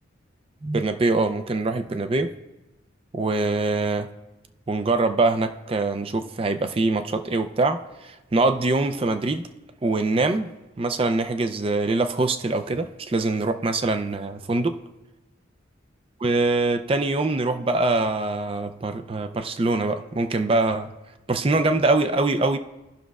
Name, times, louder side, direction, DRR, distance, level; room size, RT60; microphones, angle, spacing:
voice 1, 0.6-2.3 3.1-4.1 4.7-9.5 9.8-10.5 10.8-14.8 16.2-20.9 21.3-22.6, right 2 dB, 30° right, 9 dB, 0.4 m, -23 dB
17.5 x 6.2 x 2.3 m, 1.0 s
head